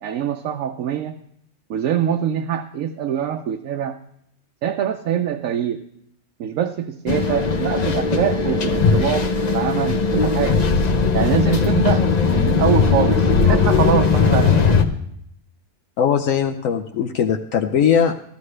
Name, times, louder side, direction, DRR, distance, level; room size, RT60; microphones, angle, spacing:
voice 1, 0.0-1.2 1.7-4.0 4.6-5.8 6.4-10.6 11.1-14.7, right 9 dB, 75° right, 4 dB, 1.0 m, -24 dB
sound 1, 7.1-14.8, left 5 dB, 40° left, 0.7 m, -18 dB
voice 2, 16.0-18.1, left 8 dB, 75° left, 5 dB, 1.1 m, -19 dB
14.5 x 13.0 x 3.2 m, 0.72 s
omnidirectional pair, 1.4 m